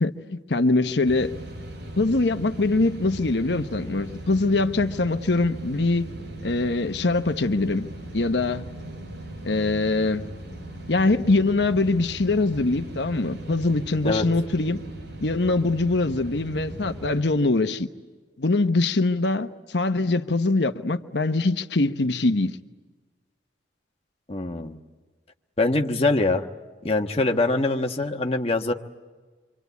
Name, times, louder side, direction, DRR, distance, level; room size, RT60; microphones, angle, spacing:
voice 1, 0.0-1.3 2.0-6.1 6.4-8.6 9.4-10.3 10.9-14.8 15.2-17.9 18.4-22.6, left 2 dB, 75° left, 1.0 m, -23 dB
sound 1, 1.0-17.2, right 1 dB, 85° right, 7.9 m, -38 dB
voice 2, 24.3-24.8 25.6-26.5 26.8-28.7, left 2 dB, 35° left, 1.4 m, -23 dB
26.5 x 25.5 x 8.3 m
head